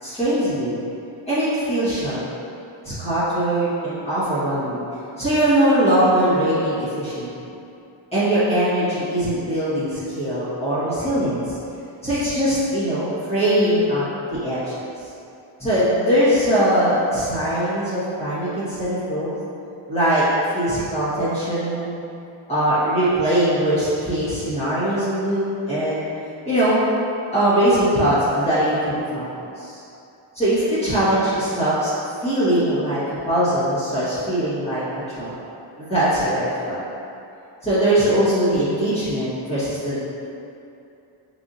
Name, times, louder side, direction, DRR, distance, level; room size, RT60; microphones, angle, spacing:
voice 1, 0.0-0.8 1.2-2.2 2.8-4.8 5.2-7.3 8.1-11.6 12.0-14.7 15.6-19.4 19.9-20.2 20.5-22.0 22.5-26.0 26.4-26.8 27.3-29.8 30.3-31.9 32.2-34.8 35.2-35.3 35.8-36.8 37.6-40.0, right 1 dB, 10° left, -14 dB, 1.4 m, -21 dB
5.6 x 2.9 x 2.6 m, 2.8 s
cardioid pair, 180°, 50 cm